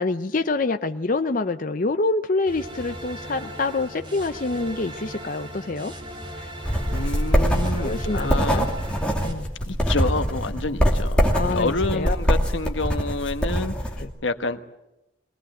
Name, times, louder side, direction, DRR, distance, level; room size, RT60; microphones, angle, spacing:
voice 1, 0.0-5.9 6.4-6.5 7.8-8.7 9.2-9.5 11.3-12.2 14.0-14.1, left 3 dB, 45° left, 7 dB, 0.7 m, -26 dB
sound 1, 2.5-9.3, equal, 25° right, 4.0 m, -38 dB
sound 2, 6.6-14.0, equal, 5° left, 2.8 m, -23 dB
voice 2, 6.9-8.7 9.7-11.2 11.5-13.7 14.2-14.6, left 3 dB, 90° left, 8 dB, 1.4 m, -28 dB
22.5 x 18.5 x 7.9 m, 0.93 s
head